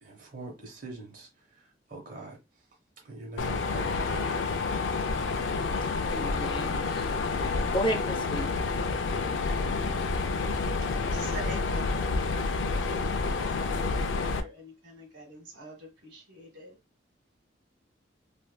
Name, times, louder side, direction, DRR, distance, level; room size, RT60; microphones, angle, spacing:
voice 1, 0.0-2.6 3.0-4.5, right 2 dB, 50° right, 0.9 m, -43 dB
Mechanisms, 3.4-14.4, left 4 dB, 85° left, 0.4 m, -29 dB
voice 2, 6.0-7.1 7.7-8.5, right 1 dB, 25° left, 0.5 m, -32 dB
voice 3, 10.3-16.8, equal, 80° right, 1.3 m, -45 dB
3.3 x 2.6 x 2.2 m
head